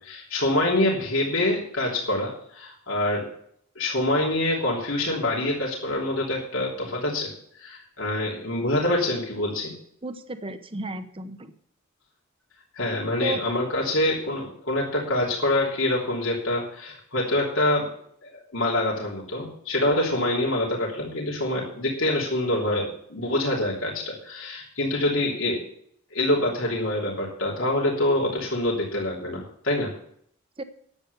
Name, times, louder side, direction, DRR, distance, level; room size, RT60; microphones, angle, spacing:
voice 1, 0.0-3.3 3.7-7.3 7.6-9.7 12.7-17.9 18.2-25.6 26.1-29.9, left 1 dB, 80° left, -3 dB, 3.3 m, -25 dB
voice 2, 10.0-11.5 13.2-13.5 30.6-30.7, right 2 dB, 25° right, 10 dB, 0.9 m, -33 dB
10.5 x 8.4 x 6.9 m, 0.64 s
head